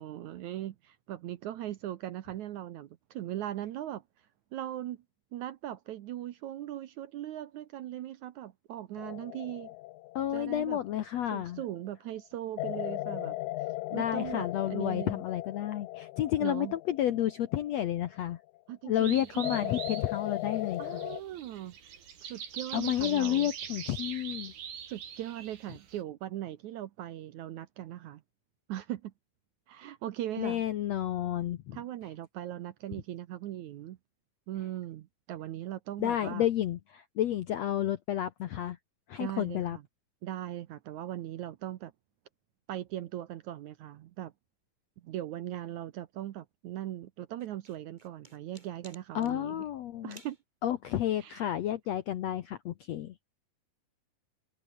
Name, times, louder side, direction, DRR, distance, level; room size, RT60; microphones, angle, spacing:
voice 1, 0.0-4.0 4.5-5.0 5.3-9.7 10.3-10.8 11.3-13.4 13.9-15.2 16.4-16.7 18.7-19.8 20.8-21.7 22.2-23.5 24.9-28.2 28.7-29.1 29.7-30.6 31.7-34.0 34.5-36.5 39.2-39.8 40.2-41.9 42.7-44.3 45.0-49.6 50.0-50.4 51.2-51.4, right 13 dB, 70° right, 2.0 m, -39 dB
sound 1, 9.0-11.6 12.6-18.4 19.4-21.2, left 17 dB, 90° left, 1.7 m, -38 dB
voice 2, 10.1-11.6 13.9-18.4 18.8-21.0 22.7-24.5 30.4-31.8 36.0-38.8 39.1-39.8 49.1-50.2 50.6-53.3, left 12 dB, 70° left, 1.6 m, -31 dB
sound 2, 19.0-26.0, right 8 dB, 85° right, 4.9 m, -43 dB
sound 3, 47.4-49.4 50.1-50.4, right 1 dB, 10° right, 6.0 m, -54 dB
omnidirectional pair, 4.2 m